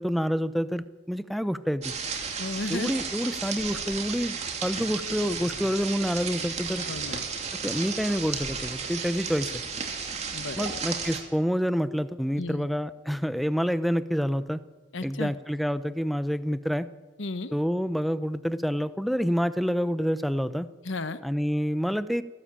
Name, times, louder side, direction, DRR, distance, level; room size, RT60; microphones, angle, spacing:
voice 1, 0.0-1.9 2.7-4.4 4.6-6.8 7.6-9.5 10.6-14.6 15.0-16.9 17.5-20.7 21.2-22.2, equal, ahead, 13 dB, 0.7 m, -27 dB
sound 1, 1.8-11.2, right 5 dB, 35° right, 2.8 m, -33 dB
voice 2, 2.4-2.9 6.9-7.2 10.3-10.8 12.4-12.7 14.9-15.3 17.2-17.5 20.8-21.2, left 2 dB, 70° left, 12 dB, 1.1 m, -33 dB
29.5 x 12.5 x 8.8 m, 1.3 s
head